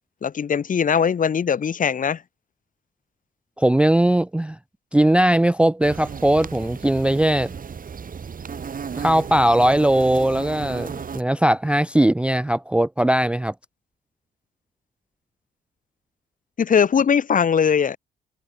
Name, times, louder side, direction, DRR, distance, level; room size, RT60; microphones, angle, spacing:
voice 1, 0.2-2.2 16.6-18.0, left 7 dB, 45° left, 1.3 m, -20 dB
voice 2, 3.6-4.6 4.9-7.5 9.0-10.9 11.1-13.5, right 1 dB, 5° right, 0.4 m, -19 dB
sound 1, 5.8-11.2, right 6 dB, 45° right, 4.9 m, -34 dB
cardioid pair, 90°, 20 cm